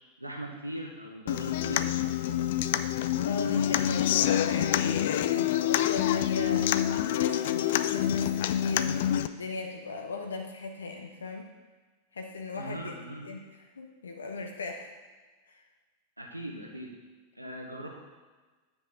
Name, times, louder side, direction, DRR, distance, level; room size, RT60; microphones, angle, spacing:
voice 1, 0.2-1.9 12.5-13.3 16.2-17.0 17.3-17.9, right 1 dB, 85° right, 0 dB, 1.2 m, -39 dB
Human voice / Acoustic guitar, 1.3-9.3, left 11 dB, 55° left, 0.3 m, -27 dB
voice 2, 3.2-11.5 12.1-12.9 13.2-13.4 13.8-14.9 15.5-15.6, left 3 dB, 70° left, 3 dB, 0.8 m, -38 dB
9.6 x 6.1 x 3.7 m, 1.3 s
figure-of-eight pair, 90°, 0 cm